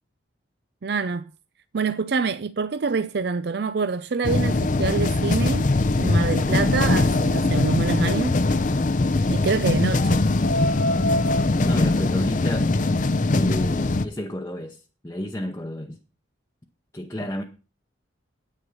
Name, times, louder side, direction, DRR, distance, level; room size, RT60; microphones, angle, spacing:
voice 1, 0.8-1.3 1.7-5.6 6.0-8.3 9.3-10.2, right 4 dB, 55° right, 0.5 m, -26 dB
sound 1, 4.2-14.1, left 2 dB, 40° left, 0.6 m, -21 dB
voice 2, 11.6-12.7 13.3-16.0 16.9-17.4, left 1 dB, 15° left, 0.8 m, -31 dB
9.8 x 8.9 x 5.4 m
head